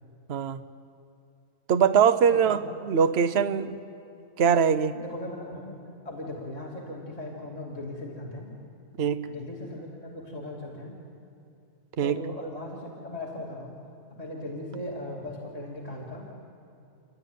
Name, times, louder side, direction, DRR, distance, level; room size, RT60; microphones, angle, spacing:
voice 1, 0.3-0.6 1.7-2.6 2.9-3.8 4.4-5.0 9.0-9.2 12.0-12.2, right 7 dB, 50° right, 10 dB, 1.0 m, -22 dB
voice 2, 2.3-2.6 4.9-5.8 6.0-8.5 9.2-10.9 12.0-13.8 14.2-16.3, left 1 dB, 25° left, -3 dB, 2.7 m, -38 dB
30.0 x 12.5 x 9.2 m, 2.7 s
omnidirectional pair, 1.6 m